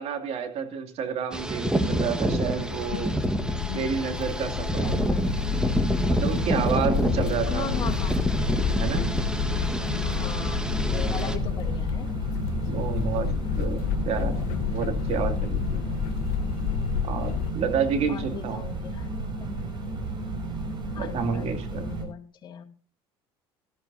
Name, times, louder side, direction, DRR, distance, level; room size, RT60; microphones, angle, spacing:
voice 1, 0.0-3.1 3.7-4.9 6.1-7.9 8.7-9.1 12.6-13.3 13.6-15.8 17.0-18.6 21.0-21.8, right 6 dB, 55° right, 6 dB, 2.6 m, -30 dB
sound 1, 1.3-11.4, right 1 dB, 5° right, 1.5 m, -28 dB
sound 2, 2.6-17.5, left 7 dB, 70° left, 1.0 m, -29 dB
sound 3, 4.7-22.0, right 2 dB, 40° right, 5.8 m, -33 dB
voice 2, 4.8-5.3 7.5-8.3 10.0-12.1 18.1-19.7 20.9-22.6, left 7 dB, 40° left, 1 dB, 2.5 m, -39 dB
17.5 x 13.5 x 2.7 m, 0.35 s
hypercardioid pair, 80°, 13 cm